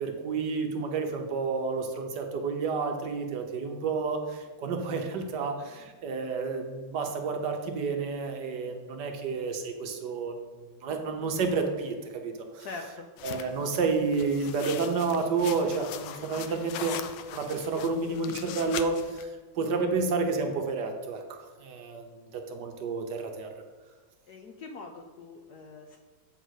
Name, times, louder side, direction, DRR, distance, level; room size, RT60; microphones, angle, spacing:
voice 1, 0.0-10.4 10.8-12.7 13.2-17.0 17.3-23.5, right 4 dB, 65° right, 4 dB, 1.3 m, -30 dB
voice 2, 12.6-13.1 24.3-26.0, left 3 dB, 70° left, 3 dB, 1.0 m, -43 dB
sound 1, 13.2-19.2, left 10 dB, 90° left, 1.4 m, -41 dB
8.1 x 3.8 x 6.3 m, 1.4 s
omnidirectional pair, 2.2 m